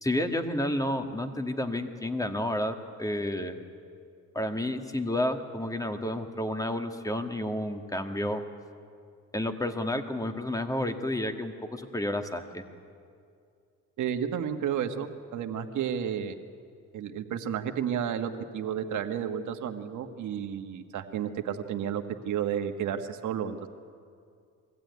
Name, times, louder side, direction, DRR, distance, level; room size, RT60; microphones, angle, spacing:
voice 1, 0.0-3.6 4.3-8.4 9.3-12.6, left 1 dB, 10° left, 6 dB, 1.8 m, -30 dB
voice 2, 14.0-16.4 16.9-23.7, right 8 dB, 75° right, 6 dB, 1.5 m, -32 dB
22.0 x 15.5 x 9.5 m, 2.3 s
cardioid pair, 90°, 30 cm